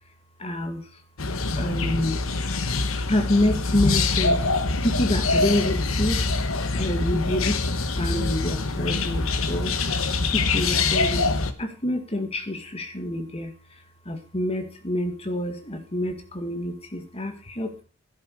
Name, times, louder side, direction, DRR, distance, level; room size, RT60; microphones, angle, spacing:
voice 1, 0.4-0.8 1.6-2.2 3.1-4.5 4.8-6.2 6.7-9.7 10.3-11.3 11.6-13.5 14.1-17.7, left 1 dB, 30° left, 6 dB, 2.1 m, -27 dB
sound 1, 1.2-11.5, left 3 dB, 70° left, 1.3 m, -24 dB
12.5 x 11.0 x 4.8 m, 0.36 s
head